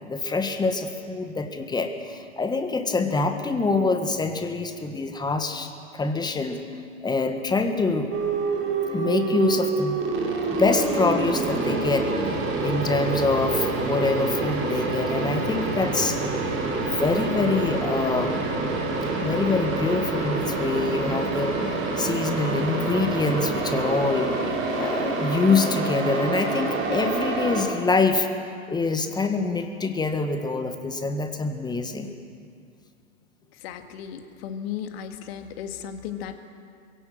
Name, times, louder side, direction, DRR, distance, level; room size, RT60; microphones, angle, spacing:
voice 1, 0.1-6.6 7.0-8.1 8.9-10.0 10.5-16.2 16.7-18.5 19.2-21.5 22.0-28.3 28.7-32.1, left 3 dB, 10° left, 7 dB, 1.5 m, -25 dB
sound 1, 8.1-27.6, right 3 dB, 30° right, 4.3 m, -27 dB
voice 2, 33.6-36.4, left 9 dB, 50° left, 7 dB, 1.9 m, -35 dB
22.5 x 17.0 x 7.8 m, 2.3 s
figure-of-eight pair, 105°, 41 cm